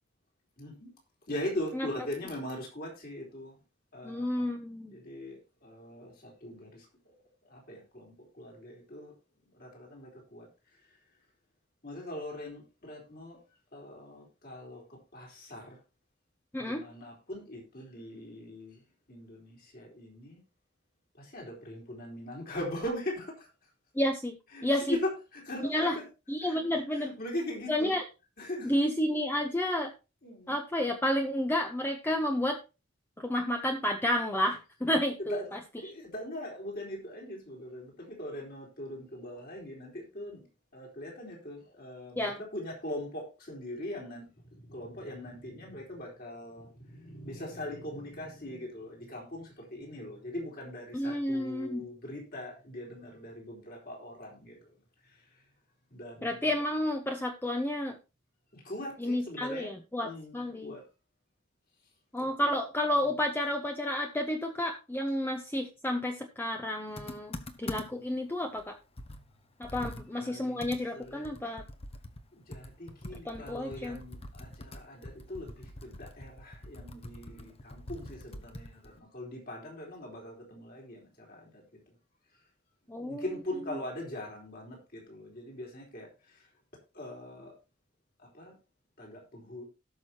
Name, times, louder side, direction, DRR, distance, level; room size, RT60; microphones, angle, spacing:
voice 1, 0.6-0.9 1.3-3.6 3.9-4.5 4.9-7.1 7.4-9.1 9.5-10.5 11.8-13.4 13.7-15.8 16.6-18.8 19.1-20.4 21.1-23.5 24.5-26.1 26.4-26.6 26.9-27.9 28.4-28.7 30.2-30.6 35.3-40.4 40.7-54.7 55.1-55.2 55.9-56.5 58.5-59.7 60.0-60.8 62.2-62.5 62.9-63.2 69.7-69.9 70.2-71.4 72.3-81.6 83.0-86.4 86.9-87.6 88.2-88.6 89.0-89.7, left 1 dB, 50° left, -1 dB, 4.2 m, -41 dB
voice 2, 4.0-5.0 16.5-16.8 23.9-24.4 24.6-25.0 25.7-26.0 26.3-27.1 27.7-28.0 28.6-29.9 30.5-32.6 33.2-35.4 42.2-42.4 50.9-51.8 56.2-58.0 59.0-60.7 62.1-68.7 69.6-71.6 73.2-74.0 82.9-83.2, left 1 dB, 10° left, 4 dB, 0.8 m, -31 dB
Computer keyboard, 67.0-68.1 68.6-68.7 69.0-72.3 72.5-79.0, left 1 dB, 30° left, 1.1 m, -45 dB
18.0 x 6.2 x 2.9 m, 0.30 s
head